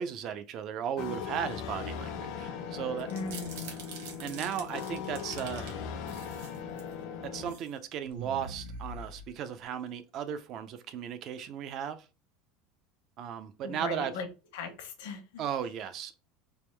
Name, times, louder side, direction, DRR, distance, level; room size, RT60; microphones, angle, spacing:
voice 1, 0.0-3.1 4.2-5.7 7.2-12.0 13.2-14.1 15.4-16.2, right 8 dB, 35° right, 0.4 m, -36 dB
sound 1, 1.0-7.5, left 7 dB, 55° left, 0.6 m, -39 dB
sound 2, 3.0-5.7 6.1-6.9 7.3-7.7 8.0-9.6, right 4 dB, 90° right, 1.1 m, -44 dB
voice 2, 3.1-3.7 13.6-14.3 14.5-15.4, left 4 dB, 85° left, 1.0 m, -38 dB
3.4 x 3.0 x 3.2 m
cardioid pair, 175°, 0 cm